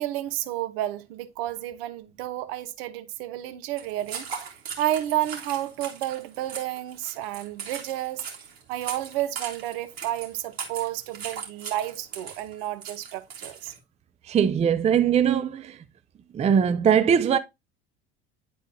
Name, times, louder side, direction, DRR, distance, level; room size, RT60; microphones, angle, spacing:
voice 1, 0.0-8.3 8.7-13.7, right 13 dB, 65° right, 1.0 m, -31 dB
sound 1, 3.8-13.8, right 6 dB, 80° right, 2.4 m, -39 dB
voice 2, 14.2-15.8 16.3-17.4, right 8 dB, 20° right, 0.5 m, -21 dB
10.5 x 4.1 x 2.7 m
hypercardioid pair, 75°, 31 cm